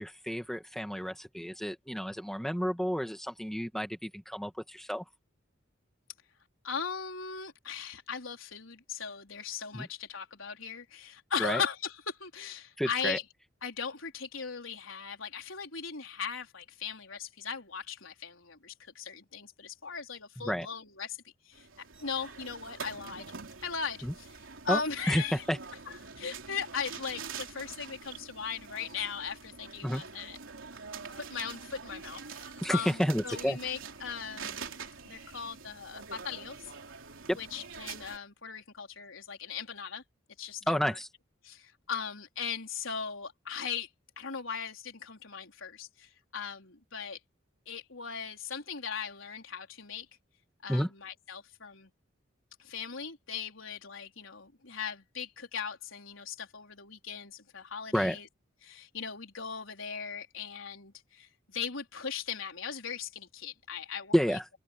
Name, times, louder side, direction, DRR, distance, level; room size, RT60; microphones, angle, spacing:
voice 1, 0.0-5.0 9.7-9.9 11.4-11.6 12.8-13.2 20.4-20.7 24.0-24.1 24.7-24.8 25.1-25.6 29.8-30.0 32.6-33.6 37.3-37.4 40.7-41.1 50.7-50.9 57.9-58.2 64.1-64.5, equal, ahead, 2.3 m, -30 dB
voice 2, 6.6-13.2 13.6-21.2 21.5-21.7 22.0-23.3 23.6-24.3 24.6-25.4 26.2-30.4 30.9-36.6 37.4-40.0 40.4-40.8 41.4-43.9 44.2-47.2 47.7-50.1 50.6-51.9 52.6-58.3 58.6-64.2, left 6 dB, 90° left, 4.3 m, -38 dB
sound 1, 21.5-38.2, right 5 dB, 85° right, 3.4 m, -45 dB
open air
head